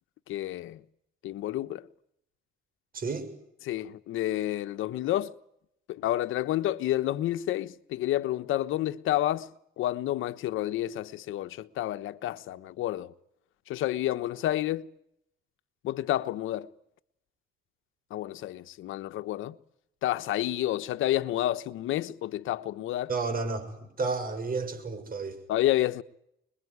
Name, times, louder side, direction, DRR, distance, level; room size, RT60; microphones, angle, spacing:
voice 1, 0.3-0.8 1.2-1.9 3.6-5.3 5.9-9.5 9.8-13.1 13.7-14.9 15.8-16.7 18.1-19.6 20.0-23.1 25.5-26.0, left 14 dB, 85° left, 1.2 m, -29 dB
voice 2, 2.9-3.3 23.1-25.4, right 4 dB, 45° right, 7.0 m, -32 dB
27.0 x 22.0 x 9.7 m
cardioid pair, 90°, 20 cm